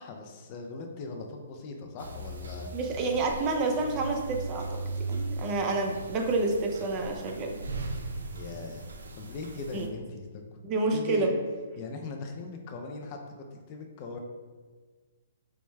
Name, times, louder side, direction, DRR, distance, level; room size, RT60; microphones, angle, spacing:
voice 1, 0.0-2.7 8.3-8.9 9.2-10.4 10.9-11.3 11.8-14.2, left 3 dB, 35° left, 3 dB, 0.4 m, -40 dB
sound 1, 2.0-9.9, right 2 dB, 90° right, 0.5 m, -38 dB
voice 2, 2.7-4.8 5.1-7.6 9.7-9.9 10.6-11.3, right 3 dB, 30° right, 2 dB, 0.5 m, -28 dB
4.6 x 2.1 x 3.2 m, 1.5 s
hypercardioid pair, 145°, 0 cm